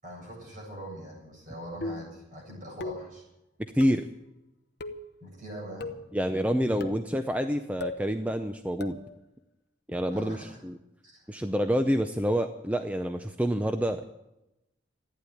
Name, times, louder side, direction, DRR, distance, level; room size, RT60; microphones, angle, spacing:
voice 1, 0.0-3.2 5.2-5.9 10.1-10.6 11.0-11.4, equal, 40° right, -2 dB, 7.8 m, -42 dB
sound 1, 1.8-2.2 2.8-3.2 3.8-4.1 4.8-5.1 5.8-6.1 6.8-7.1 7.8-8.1 8.8-9.1, left 2 dB, 55° left, 1.0 m, -37 dB
voice 2, 3.6-4.1 6.1-9.0 9.9-10.8 11.3-14.0, equal, 5° right, 7 dB, 0.6 m, -27 dB
14.5 x 10.0 x 9.3 m, 0.91 s
head